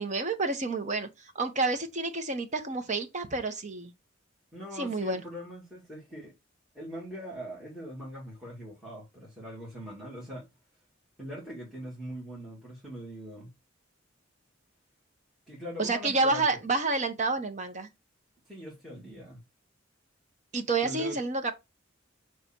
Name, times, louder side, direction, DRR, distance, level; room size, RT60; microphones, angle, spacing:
voice 1, 0.0-3.9 4.7-5.2 15.8-17.9 20.5-21.5, right 3 dB, 40° right, 1.1 m, -29 dB
voice 2, 4.5-6.3 6.7-10.5 11.2-13.5 15.5-16.6 18.5-19.4 20.8-21.2, equal, ahead, 2.6 m, -41 dB
6.8 x 3.2 x 4.5 m
head